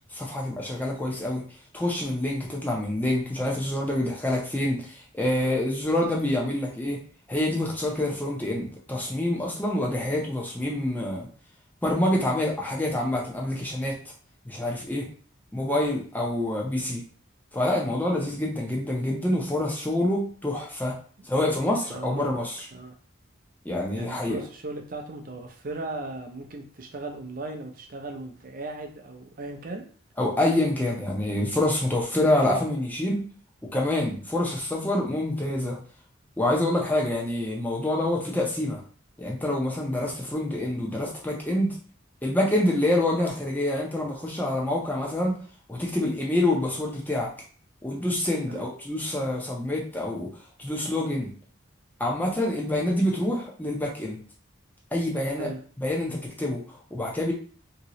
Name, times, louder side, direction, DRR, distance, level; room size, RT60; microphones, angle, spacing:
voice 1, 0.1-1.4 1.7-7.0 7.3-11.3 11.8-14.0 14.4-15.1 15.5-17.0 17.5-21.0 21.2-22.7 23.6-24.4 30.2-33.2 33.7-35.8 36.4-38.8 39.2-41.8 42.2-45.4 45.7-47.3 47.8-50.3 50.6-51.3 52.0-54.2 54.9-55.5 55.8-57.3, left 1 dB, 10° left, -2 dB, 0.6 m, -26 dB
voice 2, 21.7-22.4 22.7-22.9 23.9-29.8 40.0-40.1 48.4-48.7 52.8-52.9 55.3-55.6, right 2 dB, 45° right, 4 dB, 0.5 m, -37 dB
2.9 x 2.7 x 2.9 m, 0.43 s
head